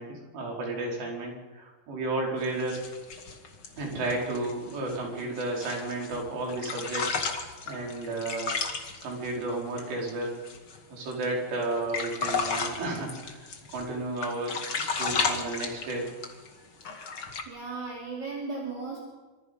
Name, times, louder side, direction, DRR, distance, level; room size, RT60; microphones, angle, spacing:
voice 1, 0.0-2.8 3.8-8.5 9.0-10.4 10.9-13.1 13.7-16.1, right 2 dB, 60° right, -1 dB, 7.2 m, -32 dB
sound 1, 2.4-6.2 6.5-10.8 11.1-11.2 11.6-13.9 14.2-16.5 16.8-17.4, left 4 dB, 45° left, 1.8 m, -33 dB
voice 2, 17.4-19.0, right 4 dB, 25° right, -2 dB, 3.0 m, -36 dB
26.5 x 26.0 x 5.5 m, 1.3 s
omnidirectional pair, 5.5 m